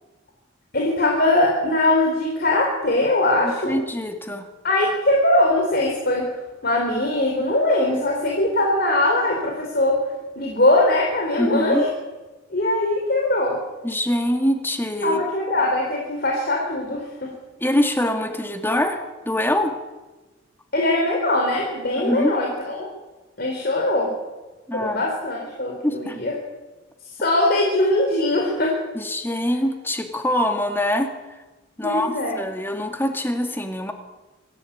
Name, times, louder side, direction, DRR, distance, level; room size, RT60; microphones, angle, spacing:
voice 1, 0.7-3.8 4.6-6.3 6.6-10.0 10.4-11.9 12.5-13.6 15.0-17.3 20.7-22.9 23.4-24.1 24.7-26.3 27.2-28.7 31.8-32.4, left 1 dB, 50° left, 0 dB, 4.2 m, -21 dB
voice 2, 3.4-4.5 11.4-11.8 13.8-15.2 17.6-19.0 19.3-19.7 22.0-22.3 24.7-25.0 25.8-26.2 28.9-31.1 31.8-33.9, left 1 dB, 10° left, 5 dB, 2.3 m, -24 dB
26.0 x 15.5 x 8.8 m, 1.2 s
head